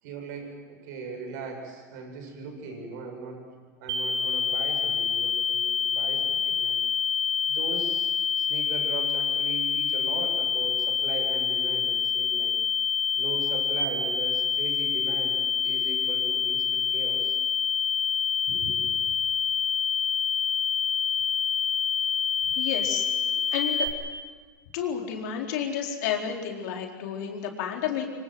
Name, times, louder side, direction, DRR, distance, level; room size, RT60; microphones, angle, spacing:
voice 1, 0.0-3.4 3.8-6.8 7.5-8.1 8.4-12.6 13.1-17.4 18.4-19.0, right 4 dB, 70° right, 4 dB, 7.6 m, -39 dB
sound 1, 3.9-23.9, left 6 dB, 50° right, 5.5 m, -26 dB
voice 2, 22.6-23.1 23.5-23.9 24.7-28.1, left 8 dB, 70° left, 1 dB, 4.3 m, -31 dB
25.0 x 25.0 x 7.9 m, 1.5 s
hypercardioid pair, 100°, 10 cm